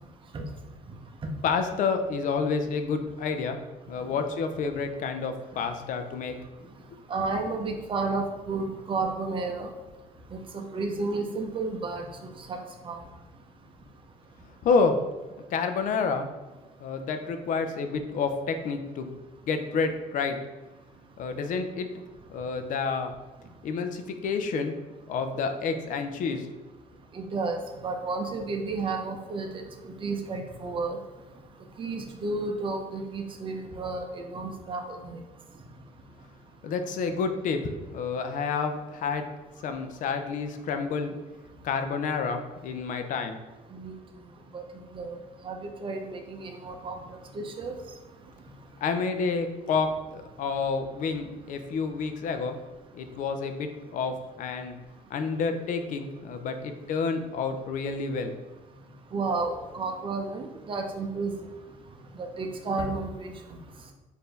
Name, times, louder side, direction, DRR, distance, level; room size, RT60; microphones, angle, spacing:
voice 1, 1.4-3.6 3.9-6.3 14.6-15.0 15.5-16.3 16.8-19.1 19.5-20.4 21.2-21.9 22.3-23.1 23.6-24.7 25.1-26.5 36.6-39.2 39.6-41.2 41.6-43.4 48.8-52.6 52.9-54.7 55.1-58.3, left 5 dB, 60° left, 7 dB, 0.5 m, -29 dB
voice 2, 7.1-9.7 10.5-12.1 12.5-12.6 12.8-13.0 27.1-27.6 27.8-29.6 30.0-31.0 31.8-35.2 43.7-43.9 44.5-44.6 44.9-45.2 45.4-47.0 47.3-47.7 59.1-61.3 62.1-63.3, right 3 dB, 35° right, 3 dB, 0.6 m, -31 dB
4.3 x 2.6 x 3.3 m, 1.2 s
cardioid pair, 105°, 15 cm